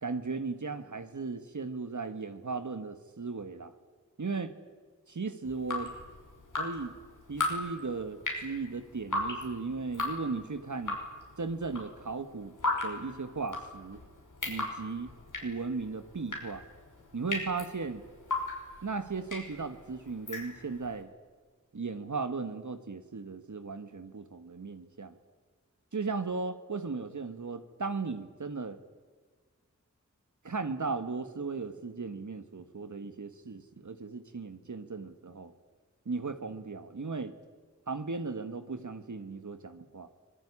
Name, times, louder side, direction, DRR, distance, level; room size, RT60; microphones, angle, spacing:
voice 1, 0.0-3.7 4.2-4.5 5.1-5.9 6.6-6.9 7.3-11.0 11.4-12.5 12.8-14.0 14.5-15.1 15.4-16.6 17.1-18.0 18.8-21.1 21.7-25.1 25.9-28.8 30.4-35.5 36.0-37.3 37.9-40.1, right 4 dB, 75° right, 9 dB, 1.5 m, -36 dB
Drip, 5.5-20.9, left 2 dB, 85° left, 5.5 m, -37 dB
24.5 x 19.0 x 9.9 m, 1.5 s
wide cardioid pair, 45°, 30 cm